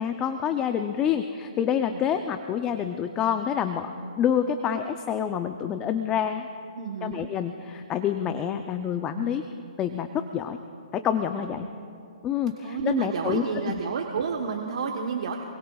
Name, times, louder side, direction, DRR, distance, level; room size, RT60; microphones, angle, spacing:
voice 1, 0.0-3.9 4.2-6.5 7.0-9.5 9.8-10.6 10.9-11.7 12.2-13.8, left 8 dB, 20° left, 8 dB, 0.5 m, -27 dB
voice 2, 6.8-7.3 11.4-11.7 12.6-15.4, right 5 dB, 65° right, 3 dB, 1.2 m, -30 dB
27.5 x 21.5 x 2.4 m, 2.5 s
hypercardioid pair, 150°, 4 cm